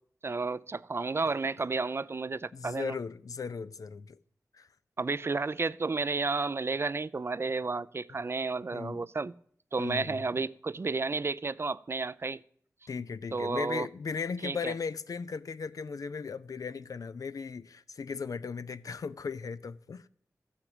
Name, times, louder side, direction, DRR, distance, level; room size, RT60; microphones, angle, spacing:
voice 1, 0.2-3.0 5.0-9.3 9.7-12.4 13.3-13.9 14.4-14.7, right 3 dB, 40° right, 0.4 m, -32 dB
voice 2, 2.5-4.2 4.5-4.7 8.7-9.0 9.8-10.3 12.9-20.1, left 5 dB, 75° left, 0.5 m, -37 dB
13.5 x 6.0 x 7.8 m
cardioid pair, 55°, 6 cm